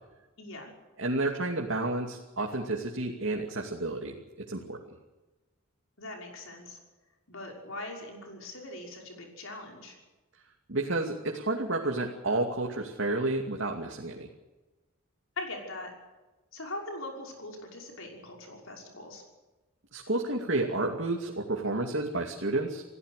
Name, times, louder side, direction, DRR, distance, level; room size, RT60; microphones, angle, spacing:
voice 1, 0.4-0.7 6.0-6.8 7.3-10.0 15.4-15.9 16.5-19.2, left 2 dB, 70° left, 1 dB, 5.9 m, -41 dB
voice 2, 1.0-4.2 4.5-4.8 10.7-14.3 19.9-22.8, right 2 dB, 60° right, 0 dB, 2.6 m, -30 dB
29.0 x 16.5 x 6.7 m, 1.1 s
head